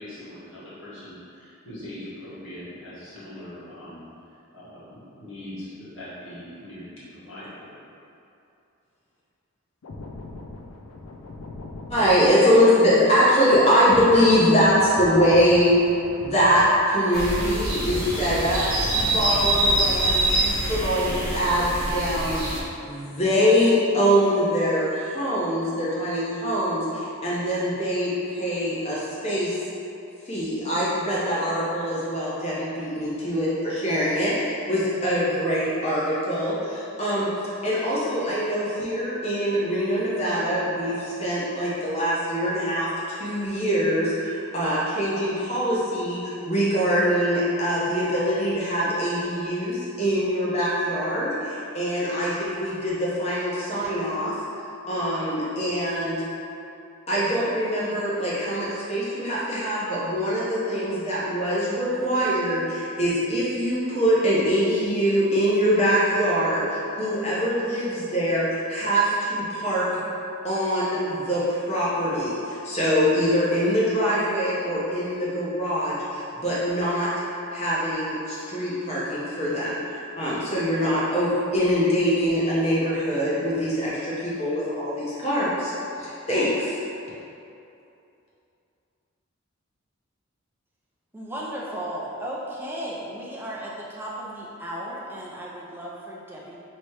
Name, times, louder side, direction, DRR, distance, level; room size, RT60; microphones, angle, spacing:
voice 1, 0.0-4.1 4.5-7.9, left 1 dB, 65° left, -11 dB, 1.4 m, -41 dB
sound 1, 9.8-17.3 17.6-21.3 21.6-21.8, left 2 dB, 80° left, 0.4 m, -40 dB
voice 2, 11.9-15.8 16.2-29.6 30.3-37.3 37.6-54.4 54.9-56.2 57.1-70.0 70.4-77.1 77.5-85.7 86.0-86.8, equal, 30° left, -8 dB, 1.0 m, -23 dB
sound 2, 17.1-22.6, right 1 dB, 75° right, 0.9 m, -25 dB
voice 3, 91.1-96.6, right 1 dB, 10° right, -5 dB, 0.5 m, -35 dB
3.1 x 3.0 x 4.6 m, 2.7 s
head